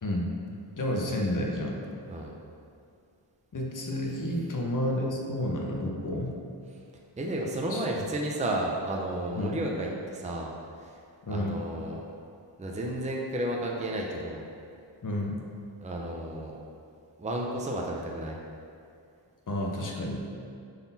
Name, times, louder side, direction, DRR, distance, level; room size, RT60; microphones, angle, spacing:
voice 1, 0.8-1.8 3.5-6.3 7.7-7.8 9.4-9.5 11.2-11.6 15.0-15.3 19.5-20.3, left 1 dB, 40° left, 0 dB, 0.9 m, -30 dB
voice 2, 7.2-10.5 10.8-11.0 11.3-12.0 12.6-14.4 15.8-16.5 17.2-18.4, right 1 dB, 15° right, -1 dB, 0.6 m, -32 dB
8.2 x 4.1 x 4.1 m, 2.4 s
wide cardioid pair, 145°, 47 cm